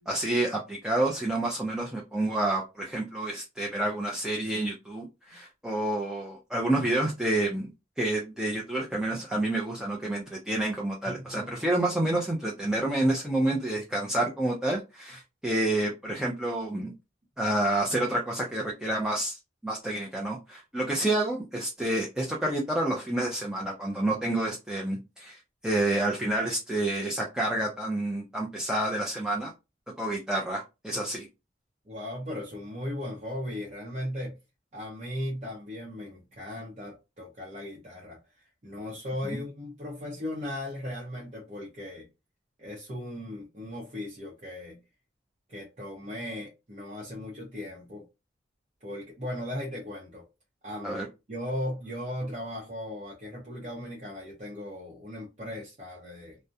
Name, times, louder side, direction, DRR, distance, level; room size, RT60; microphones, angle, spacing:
voice 1, 0.1-7.7 8.0-16.9 17.4-29.5 30.0-31.3 50.8-51.1, right 1 dB, 5° right, 0.4 m, -29 dB
voice 2, 11.1-11.6 31.9-34.4 34.7-42.1 42.6-44.8 45.5-48.0 48.8-50.3 50.6-51.0 51.3-56.4, left 1 dB, 40° right, 0.7 m, -37 dB
2.3 x 2.0 x 2.7 m
head